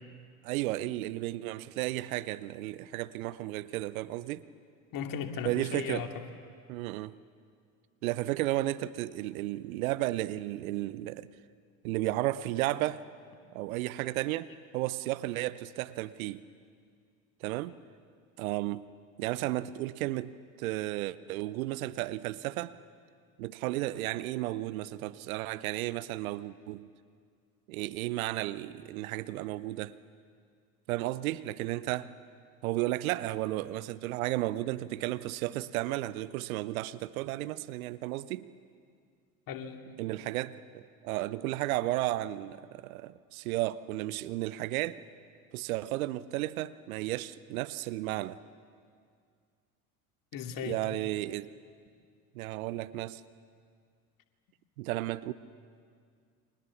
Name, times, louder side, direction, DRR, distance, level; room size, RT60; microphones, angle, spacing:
voice 1, 0.4-4.5 5.4-6.1 6.7-7.1 8.0-11.3 11.8-13.1 13.5-14.5 14.7-16.4 17.4-17.7 18.4-18.9 19.2-22.8 23.4-26.9 27.7-30.0 30.9-32.1 32.6-38.5 40.0-45.0 45.5-48.4 50.6-51.5 52.3-53.2 54.8-55.3, right 16 dB, 65° right, 1.0 m, -33 dB
voice 2, 4.9-6.1 39.5-40.0 50.3-50.8, left 7 dB, 45° left, 2.6 m, -36 dB
30.0 x 24.0 x 7.2 m
hypercardioid pair, 75°, 45 cm